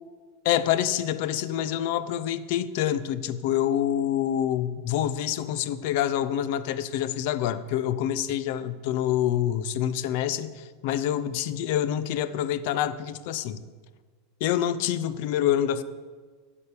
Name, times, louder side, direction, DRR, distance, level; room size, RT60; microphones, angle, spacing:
voice 1, 0.4-13.6 14.4-15.8, left 11 dB, 55° left, 14 dB, 0.6 m, -26 dB
13.5 x 5.2 x 8.4 m, 1.5 s
supercardioid pair, 165°, 0 cm